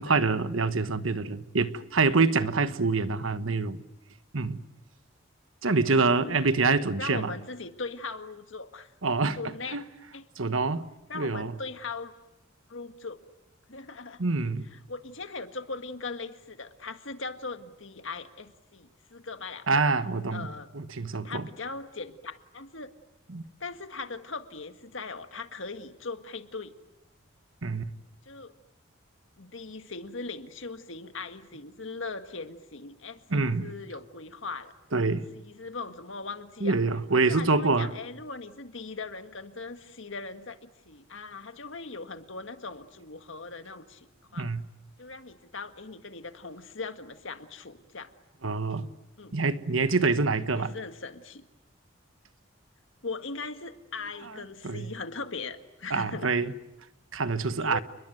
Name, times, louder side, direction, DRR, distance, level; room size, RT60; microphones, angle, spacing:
voice 1, 0.0-3.8 4.3-4.6 5.6-7.3 9.0-9.4 9.7-9.8 10.4-10.8 11.1-11.5 14.2-14.7 19.7-20.5 20.7-21.5 23.3-23.4 27.6-27.9 33.3-33.7 34.9-35.2 36.6-37.9 44.4-44.6 48.4-48.9 49.3-50.7 54.6-54.9 55.9-56.5 57.1-57.8, right 3 dB, 75° right, 1.3 m, -26 dB
voice 2, 5.9-6.5 7.0-8.9 9.4-9.8 10.1-10.2 11.1-12.1 12.7-13.2 13.7-14.2 14.7-19.7 20.3-20.7 21.1-22.9 23.6-26.7 28.3-28.5 29.4-34.7 35.3-36.8 37.1-44.1 44.3-44.5 45.0-48.1 49.2-49.4 50.5-51.5 53.0-56.3 57.6-57.8, left 4 dB, 70° left, 1.8 m, -39 dB
29.5 x 21.5 x 9.2 m
head